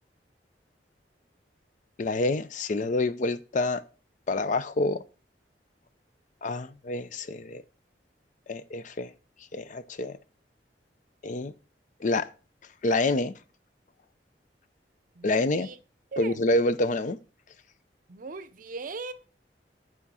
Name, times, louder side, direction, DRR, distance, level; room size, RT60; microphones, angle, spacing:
voice 1, 2.0-3.8 4.3-5.0 6.4-7.6 8.5-9.1 9.5-10.2 11.2-11.5 12.0-12.3 12.8-13.3 15.2-15.7 16.2-17.2, left 2 dB, 45° left, 0.5 m, -27 dB
voice 2, 15.1-15.8 16.1-16.4 18.1-19.1, right 4 dB, 50° right, 0.6 m, -38 dB
8.3 x 3.7 x 5.5 m
head